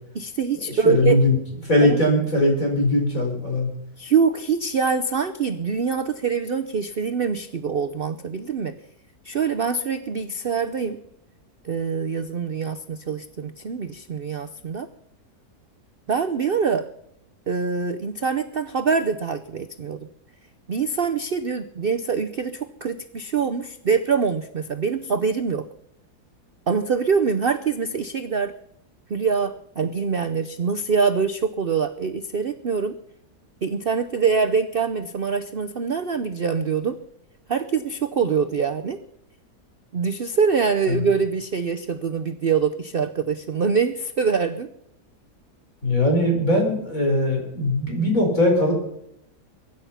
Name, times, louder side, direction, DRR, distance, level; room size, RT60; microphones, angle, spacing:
voice 1, 0.1-1.2 1.8-2.0 4.0-8.7 9.2-11.0 11.6-14.9 16.1-16.9 17.5-20.1 20.7-25.7 26.7-28.5 29.1-33.0 33.6-37.0 37.5-39.0 39.9-44.7, right 5 dB, 50° right, 9 dB, 0.7 m, -24 dB
voice 2, 0.7-1.4 1.6-3.7 40.9-41.0 45.8-48.7, left 1 dB, 55° left, 1 dB, 4.8 m, -20 dB
23.0 x 10.5 x 5.7 m, 0.78 s
omnidirectional pair, 1.8 m